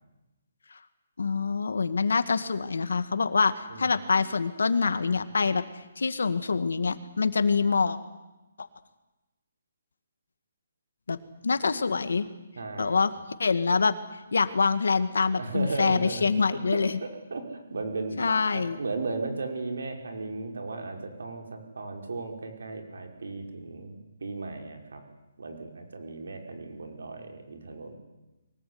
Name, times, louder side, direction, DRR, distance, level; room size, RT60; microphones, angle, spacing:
voice 1, 1.2-5.6 6.0-8.0 8.6-8.7 11.1-11.2 11.4-12.3 12.8-13.1 13.4-13.9 14.3-16.9 18.2-18.8, left 4 dB, 85° left, 11 dB, 2.1 m, -25 dB
voice 2, 3.7-4.0 12.6-13.0 15.4-25.0 25.4-27.9, right 3 dB, 80° right, 4 dB, 5.3 m, -36 dB
23.5 x 19.5 x 9.7 m, 1.0 s
hypercardioid pair, 165°, 0 cm